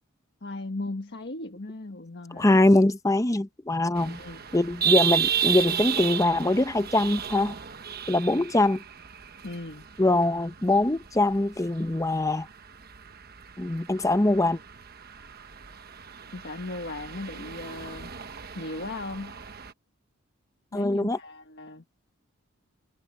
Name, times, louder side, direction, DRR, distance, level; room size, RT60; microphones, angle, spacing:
voice 1, 0.4-2.6 4.0-4.4 9.4-9.9 16.3-18.1 18.5-19.4 20.7-21.8, left 2 dB, 55° left, 1.4 m, -37 dB
voice 2, 2.3-4.2 4.5-7.5 8.1-8.8 10.0-12.5 13.6-14.6 20.7-21.2, left 2 dB, 15° left, 0.7 m, -23 dB
sound 1, 4.0-19.7, right 9 dB, 45° right, 1.1 m, -33 dB
head